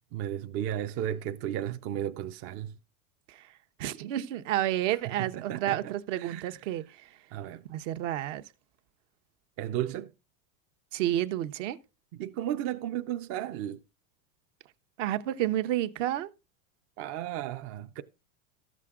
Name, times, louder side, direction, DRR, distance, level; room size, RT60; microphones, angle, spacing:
voice 1, 0.1-2.8 5.2-6.6 7.3-7.6 9.6-10.1 12.1-13.8 17.0-18.0, right 11 dB, 35° right, 0.5 m, -34 dB
voice 2, 3.8-7.1 7.7-8.4 10.9-11.8 15.0-16.3, right 13 dB, 65° right, 1.0 m, -30 dB
13.0 x 7.5 x 3.7 m
supercardioid pair, 140°, 41 cm